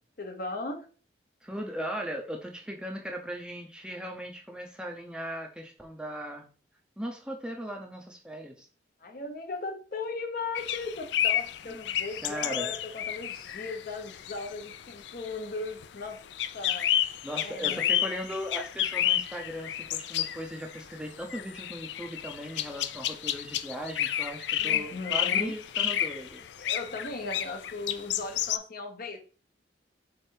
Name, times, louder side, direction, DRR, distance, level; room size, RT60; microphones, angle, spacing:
voice 1, 0.2-0.9 9.0-16.2 16.5-16.9 17.4-18.1 24.6-25.5 26.6-29.2, left 3 dB, 50° left, 5 dB, 0.8 m, -37 dB
voice 2, 1.4-6.5 7.0-8.7 11.7-11.8 12.2-12.7 17.2-26.4, equal, 5° right, 2 dB, 0.5 m, -38 dB
sound 1, 10.5-28.6, left 11 dB, 75° left, 0.4 m, -31 dB
3.6 x 3.3 x 4.4 m, 0.38 s
head